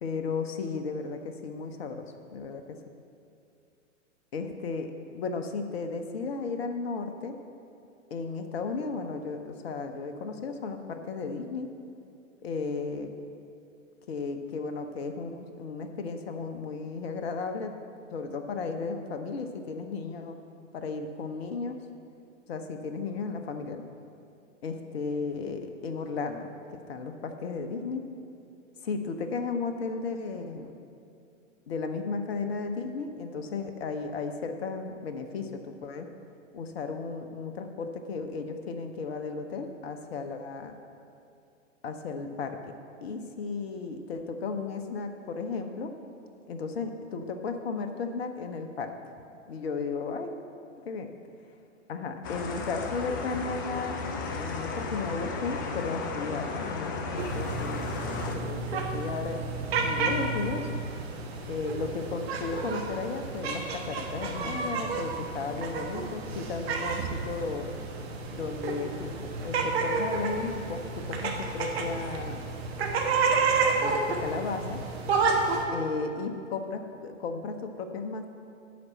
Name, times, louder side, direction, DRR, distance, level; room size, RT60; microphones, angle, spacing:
voice 1, 0.0-2.8 4.3-7.4 8.1-11.7 12.4-13.1 14.1-17.7 18.1-20.4 20.7-21.8 22.5-23.8 24.6-28.0 28.8-30.7 31.7-36.1 36.5-40.7 41.8-42.7 43.0-45.9 46.5-48.9 49.5-50.3 50.8-51.1 51.9-54.0 54.4-59.4 59.8-60.8 61.5-67.7 68.3-69.1 69.4-72.4 73.8-74.8 75.7-78.3, left 4 dB, 50° left, 6 dB, 0.9 m, -34 dB
sound 1, 52.2-58.3, left 4 dB, 15° left, 0.3 m, -34 dB
sound 2, 57.2-75.7, right 4 dB, 50° right, 1.2 m, -31 dB
9.5 x 5.2 x 7.3 m, 2.6 s
figure-of-eight pair, 110°, 39 cm